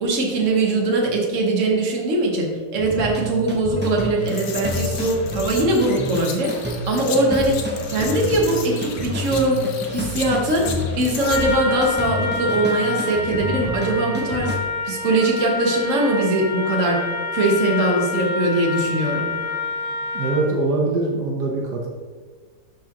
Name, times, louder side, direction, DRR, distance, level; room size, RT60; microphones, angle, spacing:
voice 1, 0.0-6.5 6.9-7.6 7.9-9.6 9.9-10.7 11.0-14.5 14.8-19.3, right 2 dB, 45° right, 0 dB, 1.5 m, -21 dB
sound 1, 2.8-14.6, equal, 10° right, 0.6 m, -29 dB
sound 2, 4.2-11.4, left 5 dB, 60° left, 1.2 m, -35 dB
Trumpet, 11.2-20.6, left 3 dB, 90° left, 2.0 m, -27 dB
voice 2, 20.1-21.9, right 3 dB, 65° right, -1 dB, 1.5 m, -23 dB
12.0 x 5.0 x 2.9 m, 1.5 s
omnidirectional pair, 1.9 m